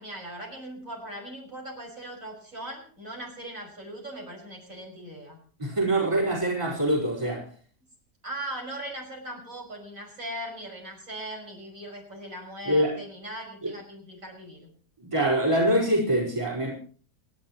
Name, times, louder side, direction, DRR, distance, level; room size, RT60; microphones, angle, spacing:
voice 1, 0.0-5.4 8.2-14.7, right 1 dB, 50° right, 1 dB, 6.2 m, -39 dB
voice 2, 5.6-7.5 12.6-13.0 13.6-13.7 15.0-16.7, right 1 dB, 15° right, -3 dB, 4.7 m, -24 dB
28.5 x 11.0 x 3.0 m, 0.42 s
omnidirectional pair, 1.8 m